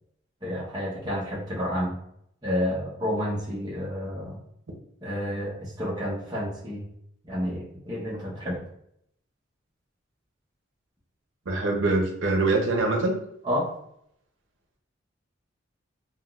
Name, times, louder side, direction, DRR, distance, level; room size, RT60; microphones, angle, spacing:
voice 1, 0.4-2.0 2.4-4.4 5.0-6.8 7.2-8.6 13.4-13.7, equal, 20° right, -7 dB, 0.8 m, -30 dB
voice 2, 11.5-13.2, right 2 dB, 80° right, 1 dB, 0.7 m, -24 dB
3.6 x 2.3 x 2.3 m, 0.73 s
head